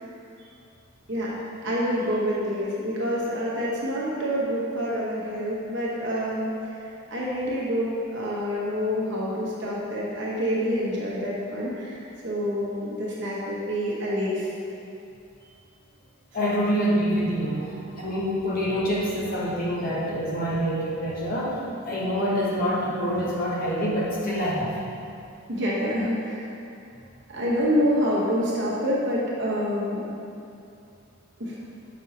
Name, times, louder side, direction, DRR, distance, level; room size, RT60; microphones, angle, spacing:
voice 1, 1.6-6.5 7.1-14.5 25.5-26.5 27.3-30.0 31.4-31.6, equal, 55° right, -6 dB, 1.2 m, -27 dB
voice 2, 16.3-17.6 18.0-21.6 21.8-24.7, equal, 45° left, -5 dB, 1.0 m, -26 dB
6.2 x 5.4 x 2.9 m, 2.5 s
head